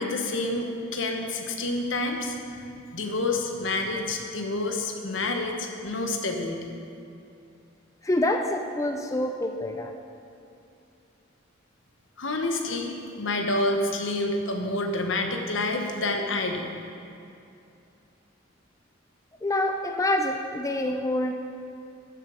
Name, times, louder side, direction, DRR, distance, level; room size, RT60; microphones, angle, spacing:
voice 1, 0.0-6.7 12.2-16.7, left 2 dB, 70° left, 4 dB, 1.2 m, -28 dB
voice 2, 8.0-9.9 19.4-21.3, left 1 dB, 15° left, 4 dB, 0.4 m, -26 dB
14.0 x 7.3 x 5.0 m, 2.6 s
head